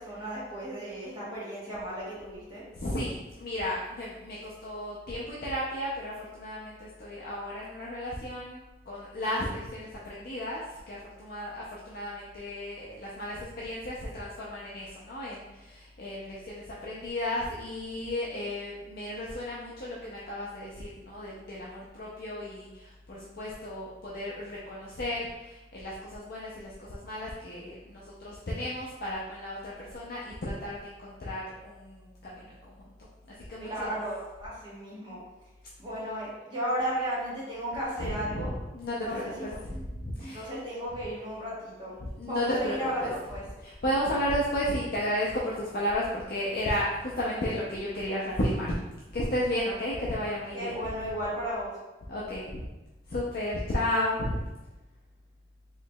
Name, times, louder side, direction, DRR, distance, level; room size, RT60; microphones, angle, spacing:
voice 1, 0.0-2.6 33.6-35.2 35.8-38.5 39.0-39.8 40.2-41.9 42.3-43.4 50.5-51.7, equal, 25° right, -9 dB, 1.3 m, -34 dB
voice 2, 2.7-32.7 33.5-33.9 38.0-39.5 39.8-40.5 42.0-43.1 43.6-48.7 49.1-50.8 52.1-52.7 53.1-54.4, left 1 dB, 50° left, -6 dB, 0.5 m, -33 dB
4.4 x 3.0 x 2.2 m, 1.1 s
head